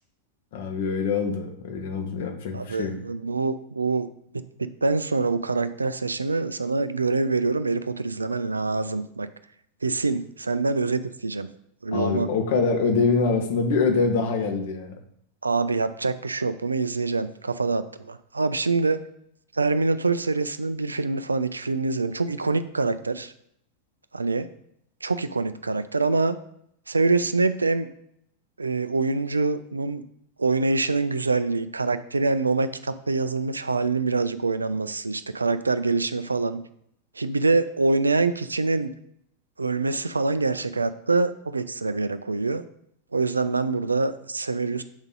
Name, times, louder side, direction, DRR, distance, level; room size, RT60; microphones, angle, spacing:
voice 1, 0.5-3.0 11.9-14.9, left 4 dB, 55° left, 4 dB, 1.0 m, -24 dB
voice 2, 2.5-4.1 4.3-9.3 9.8-11.5 11.8-12.3 15.4-19.0 19.5-23.3 24.1-24.5 25.0-26.4 26.9-27.9 28.6-30.0 30.4-36.6 37.2-38.9 39.6-42.6 43.1-44.8, right 3 dB, 80° right, 12 dB, 0.3 m, -25 dB
7.0 x 4.0 x 3.7 m, 0.72 s
figure-of-eight pair, 90°, 0 cm